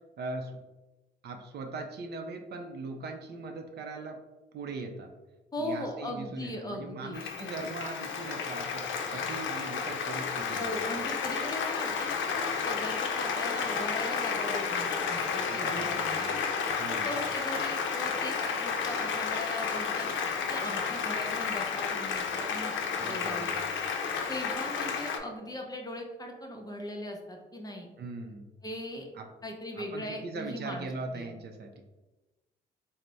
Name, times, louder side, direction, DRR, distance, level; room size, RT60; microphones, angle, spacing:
voice 1, 0.2-0.6 1.2-4.2 4.5-5.1 5.6-10.9 15.5-16.5 16.8-17.1 23.0-23.9 28.0-28.5 29.1-29.2 29.8-31.8, right 3 dB, 55° right, 4 dB, 0.5 m, -40 dB
voice 2, 5.5-7.8 10.6-16.3 16.8-20.1 20.5-23.5 24.3-27.9 28.6-29.1 29.4-31.3, left 1 dB, 20° left, 1 dB, 0.7 m, -39 dB
Applause, 7.1-25.2, left 6 dB, 75° left, 0.5 m, -32 dB
3.3 x 2.1 x 3.9 m, 1.1 s
cardioid pair, 90°, 20 cm